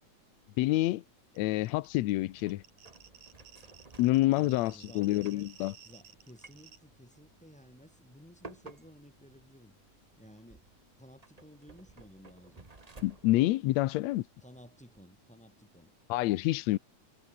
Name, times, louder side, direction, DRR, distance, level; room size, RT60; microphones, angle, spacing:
voice 1, 0.6-1.0 1.4-2.6 4.0-5.7 13.0-14.3 16.1-16.8, left 17 dB, 75° left, 1.9 m, -27 dB
sound 1, 1.4-15.0, right 3 dB, 20° right, 0.9 m, -57 dB
sound 2, 1.4-1.5 1.6-6.8, right 8 dB, 80° right, 3.6 m, -55 dB
voice 2, 4.3-5.5 5.8-9.7 10.2-10.7 11.0-12.7 14.4-15.9, equal, ahead, 7.3 m, -55 dB
omnidirectional pair, 3.3 m